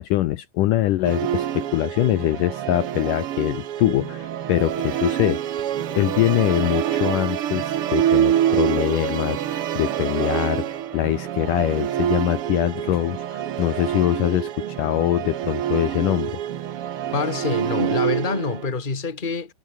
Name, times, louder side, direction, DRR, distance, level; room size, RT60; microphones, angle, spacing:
voice 1, 0.0-5.4 5.9-16.3, left 14 dB, 70° left, 2.3 m, -23 dB
Musical instrument, 1.0-18.7, right 11 dB, 70° right, 1.3 m, -26 dB
voice 2, 17.1-19.5, left 4 dB, 15° left, 2.2 m, -26 dB
omnidirectional pair, 4.3 m